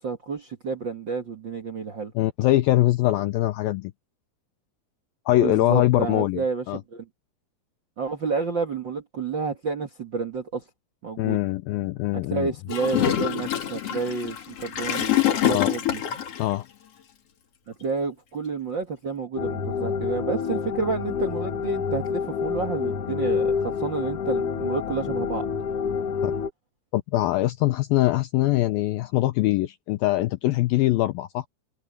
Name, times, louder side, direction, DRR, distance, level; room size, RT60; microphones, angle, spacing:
voice 1, 0.0-2.1 5.4-6.6 6.9-7.1 8.0-10.6 11.0-11.4 12.3-16.0 17.8-25.5, right 4 dB, 70° right, 1.0 m, -30 dB
voice 2, 2.2-3.9 5.3-6.8 11.2-12.5 15.5-15.7 16.4-16.6 26.2-26.3 26.9-31.5, left 16 dB, 85° left, 2.1 m, -23 dB
Gurgling / Toilet flush, 12.7-16.4, left 10 dB, 50° left, 2.0 m, -25 dB
sound 1, 19.4-26.5, left 6 dB, 70° left, 1.4 m, -28 dB
omnidirectional pair, 4.9 m